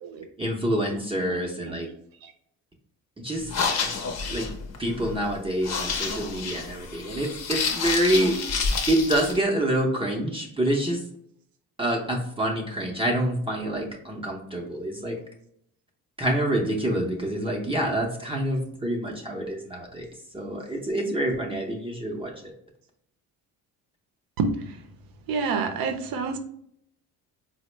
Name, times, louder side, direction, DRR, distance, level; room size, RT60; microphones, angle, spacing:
voice 1, 0.4-1.9 3.2-3.5 4.3-4.5 4.8-8.4 8.9-11.0 11.8-15.1 16.2-20.0 20.3-22.5, right 1 dB, 15° right, -2 dB, 0.6 m, -27 dB
sound 1, 3.4-9.4, left 5 dB, 45° left, 0.6 m, -29 dB
voice 2, 24.4-24.8 25.3-26.4, right 4 dB, 65° right, 7 dB, 0.6 m, -28 dB
4.1 x 2.1 x 3.1 m, 0.70 s
cardioid pair, 90°, 37 cm